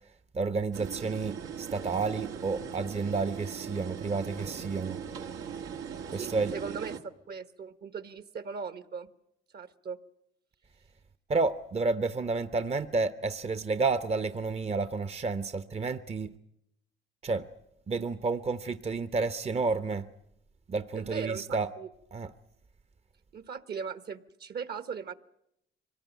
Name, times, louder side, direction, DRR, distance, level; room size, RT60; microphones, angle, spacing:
voice 1, 0.3-5.0 6.1-6.5 11.3-16.3 17.2-17.5 17.9-20.0 20.7-21.7 22.1-22.3, right 4 dB, 30° right, 11 dB, 0.9 m, -30 dB
sound 1, 0.7-7.0, right 7 dB, 85° right, 1.7 m, -40 dB
voice 2, 6.1-7.0 7.3-9.1 9.5-10.0 20.9-21.9 23.3-25.1, right 6 dB, 55° right, 12 dB, 1.4 m, -38 dB
24.5 x 18.5 x 9.3 m, 0.81 s
cardioid pair, 90°, 20 cm